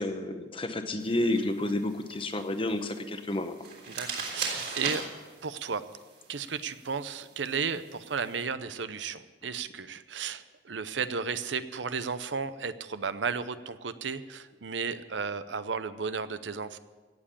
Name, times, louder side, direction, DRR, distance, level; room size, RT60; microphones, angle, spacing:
voice 1, 0.0-3.6, left 1 dB, 30° left, 8 dB, 1.0 m, -30 dB
sound 1, 1.0-8.4, right 4 dB, 55° right, 3.4 m, -40 dB
voice 2, 3.9-5.0 5.4-5.8 6.3-16.8, right 5 dB, 85° right, 13 dB, 0.7 m, -34 dB
17.5 x 7.5 x 8.5 m, 1.4 s
head